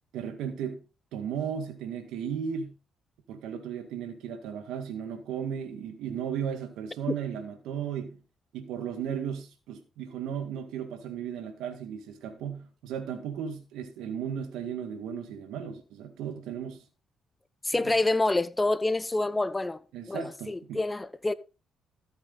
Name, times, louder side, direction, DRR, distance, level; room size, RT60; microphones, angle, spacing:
voice 1, 0.1-0.8 1.1-2.7 3.3-8.2 8.5-16.8 17.8-17.9 19.9-20.8, right 8 dB, 90° right, 1.8 m, -35 dB
voice 2, 17.6-19.8 20.1-21.3, left 2 dB, 15° left, 1.0 m, -27 dB
14.0 x 8.1 x 4.0 m
cardioid pair, 90°, 0 cm